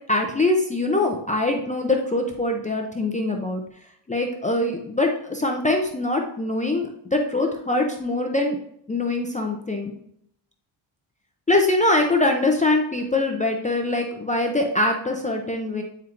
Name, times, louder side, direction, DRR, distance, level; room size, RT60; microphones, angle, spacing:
voice 1, 0.1-3.6 4.1-8.6 8.9-9.9 11.5-15.8, left 2 dB, 15° left, 2 dB, 0.4 m, -23 dB
8.7 x 4.4 x 2.5 m, 0.70 s
wide cardioid pair, 160°, 49 cm